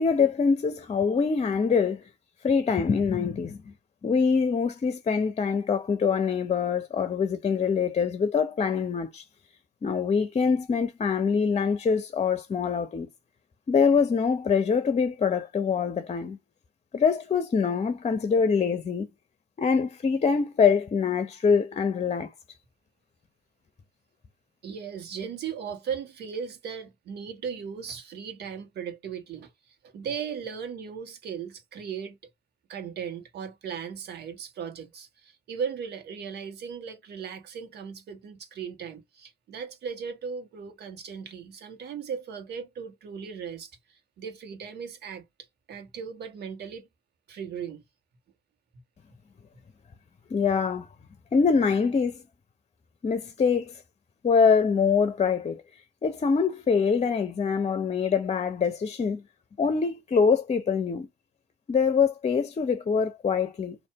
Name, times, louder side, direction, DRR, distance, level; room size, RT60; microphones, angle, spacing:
voice 1, 0.0-2.0 2.4-3.6 4.0-9.2 9.8-13.1 13.7-16.4 16.9-19.1 19.6-22.3 50.3-50.9 51.3-52.2 53.0-53.8 54.2-55.6 56.0-59.2 59.6-61.1 61.7-63.8, left 5 dB, 35° left, 0.8 m, -24 dB
voice 2, 24.6-32.2 32.7-45.2 45.7-46.9 47.3-47.8, right 7 dB, 60° right, 1.4 m, -37 dB
4.2 x 2.7 x 3.5 m
hypercardioid pair, 45°, 19 cm